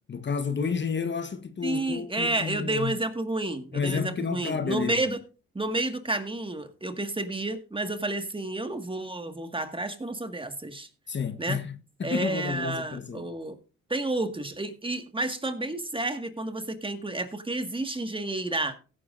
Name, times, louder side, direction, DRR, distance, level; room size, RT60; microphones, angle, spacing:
voice 1, 0.1-2.9 3.7-5.0 11.1-13.3, left 5 dB, 40° left, 1.3 m, -30 dB
voice 2, 1.6-5.2 5.6-10.9 11.4-11.6 12.0-13.6 13.9-18.8, right 2 dB, 15° right, 1.8 m, -30 dB
16.5 x 9.6 x 2.6 m
supercardioid pair, 65°, 29 cm